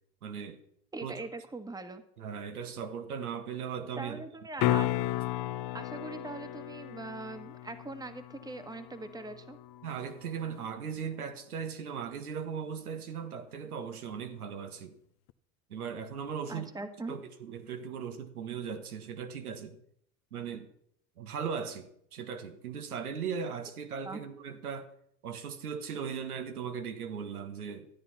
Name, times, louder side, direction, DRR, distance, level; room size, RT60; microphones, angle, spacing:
voice 1, 0.2-0.6 1.0-1.2 2.2-4.2 9.8-15.0 15.7-16.7 17.1-19.8 20.3-20.7 21.2-24.9 25.2-27.9, right 7 dB, 90° right, 1.6 m, -38 dB
voice 2, 0.9-2.0 4.0-4.9 5.7-9.6 16.5-17.1 24.0-24.2, right 3 dB, 10° right, 1.4 m, -41 dB
sound 1, 4.6-10.6 15.3-15.4, left 14 dB, 50° left, 0.8 m, -34 dB
13.5 x 9.3 x 5.8 m
hypercardioid pair, 90°, 43 cm